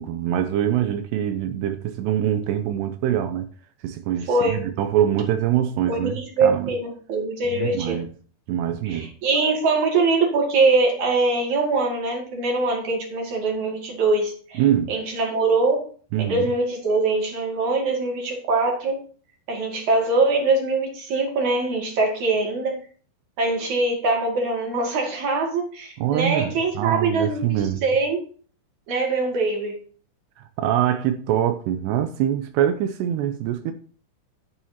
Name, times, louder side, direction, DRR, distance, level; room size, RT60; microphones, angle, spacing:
voice 1, 0.0-3.5 3.8-6.7 7.5-8.1 8.5-9.1 14.6-15.0 16.1-16.5 26.0-27.8 30.6-33.7, right 11 dB, 85° right, 2.4 m, -24 dB
voice 2, 4.3-4.7 5.9-8.0 8.8-14.6 14.9-15.9 16.2-19.0 19.5-22.8 23.4-28.2 28.9-29.8, right 3 dB, 45° right, 3.1 m, -23 dB
11.0 x 9.9 x 2.9 m
omnidirectional pair, 5.6 m